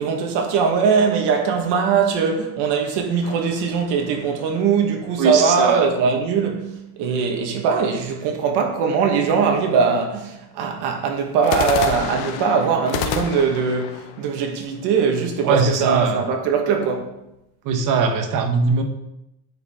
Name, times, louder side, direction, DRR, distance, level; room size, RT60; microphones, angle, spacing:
voice 1, 0.0-17.2, right 5 dB, 85° right, 1.4 m, -21 dB
sound 1, 3.2-4.7 11.4-15.4, left 7 dB, 70° left, 0.8 m, -30 dB
voice 2, 5.2-5.9 15.4-16.2 17.6-18.8, right 5 dB, 50° right, 1.0 m, -20 dB
9.4 x 4.9 x 3.5 m
cardioid pair, 165°, 40 cm